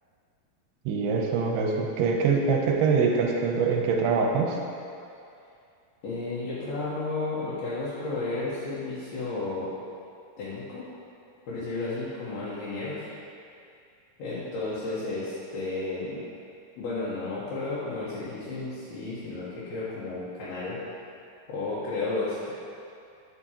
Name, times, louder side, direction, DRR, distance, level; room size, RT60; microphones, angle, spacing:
voice 1, 0.9-4.6, right 5 dB, 90° right, 0 dB, 2.6 m, -24 dB
voice 2, 6.0-9.7 10.4-10.8 11.5-13.1 14.2-16.2 16.8-20.8 21.5-22.5, left 3 dB, 70° left, -10 dB, 2.8 m, -32 dB
9.3 x 6.2 x 2.9 m, 2.5 s
omnidirectional pair, 4.6 m